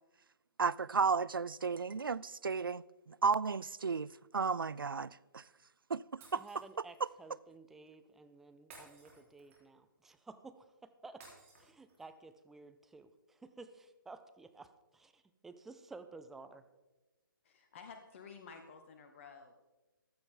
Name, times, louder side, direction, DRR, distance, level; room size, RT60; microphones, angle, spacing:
voice 1, 0.6-5.4 5.9-6.4, right 5 dB, 75° right, 0.4 m, -34 dB
Shatter, 6.2-7.1 8.7-9.8 11.2-12.2, right 3 dB, 40° right, 4.1 m, -58 dB
voice 2, 6.3-11.2 11.6-16.6, right 3 dB, 5° right, 0.3 m, -53 dB
voice 3, 17.4-19.5, left 5 dB, 35° left, 1.0 m, -52 dB
15.0 x 11.5 x 3.8 m
figure-of-eight pair, 140°, 12 cm